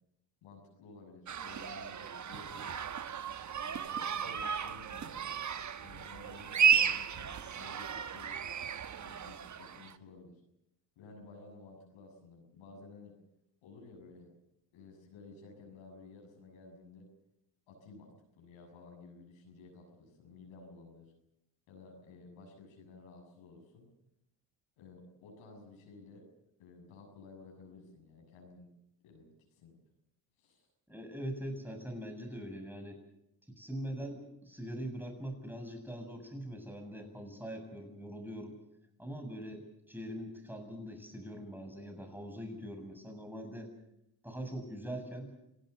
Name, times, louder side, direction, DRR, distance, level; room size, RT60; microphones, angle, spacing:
voice 1, 0.4-2.7 3.8-5.3 5.8-8.4 9.0-10.4 11.0-13.2 13.6-14.3 14.7-17.1 17.7-21.1 21.7-23.9 24.8-26.3 26.6-28.7 29.0-29.8 30.4-30.7, left 3 dB, 75° left, 1 dB, 7.1 m, -54 dB
sound 1, 1.3-9.9, right 7 dB, 35° right, 1.2 m, -33 dB
voice 2, 30.9-33.0 33.5-38.6 39.0-43.7 44.2-45.3, equal, 5° right, 5 dB, 7.5 m, -42 dB
27.5 x 17.0 x 6.8 m, 0.80 s
supercardioid pair, 65°, 49 cm